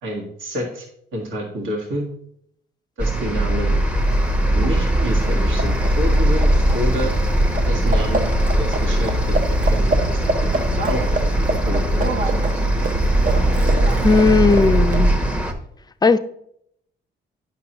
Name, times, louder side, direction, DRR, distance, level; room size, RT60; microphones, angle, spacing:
voice 1, 0.0-0.9 1.1-2.1 3.0-3.8 4.5-7.1 7.7-10.2 10.9-11.0 11.5-12.5, equal, 80° right, -1 dB, 1.6 m, -28 dB
sound 1, 3.0-15.5, equal, 5° right, 0.8 m, -20 dB
Livestock farm animals working animals, 3.8-15.4, right 2 dB, 40° right, 0.7 m, -23 dB
voice 2, 14.0-15.1 16.0-16.2, left 4 dB, 20° left, 12 dB, 0.4 m, -15 dB
8.5 x 6.0 x 2.9 m, 0.70 s
cardioid pair, 90°, 20 cm